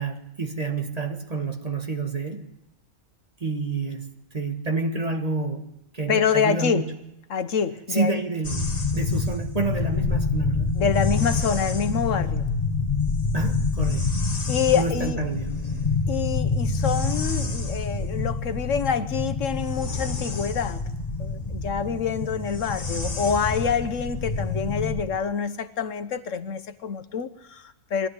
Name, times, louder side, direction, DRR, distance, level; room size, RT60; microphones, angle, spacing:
voice 1, 0.0-2.5 3.4-4.1 4.3-5.6 5.9-6.9 7.9-10.8 13.3-14.1 14.7-15.6, right 3 dB, 30° right, 5 dB, 1.7 m, -28 dB
voice 2, 6.1-6.8 7.3-8.1 10.8-12.5 14.5-15.2 16.1-20.8 21.2-28.1, left 7 dB, 75° left, 11 dB, 1.4 m, -26 dB
sound 1, 8.4-25.0, left 4 dB, 30° left, 1.4 m, -27 dB
22.0 x 14.5 x 9.8 m, 0.86 s
omnidirectional pair, 1.3 m